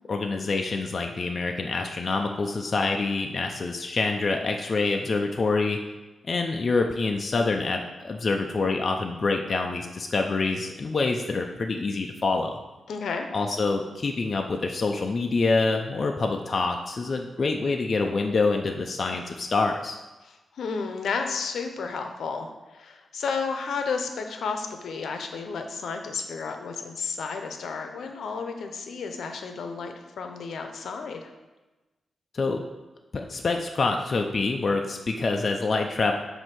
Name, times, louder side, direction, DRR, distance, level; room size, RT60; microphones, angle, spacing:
voice 1, 0.1-5.8 6.3-12.6 13.3-20.0 32.3-32.6 33.1-36.1, left 3 dB, 40° left, 3 dB, 0.4 m, -26 dB
voice 2, 12.9-13.3 20.2-31.3, left 5 dB, 75° left, 5 dB, 0.7 m, -32 dB
7.7 x 2.7 x 5.9 m, 1.1 s
wide cardioid pair, 150°, 0 cm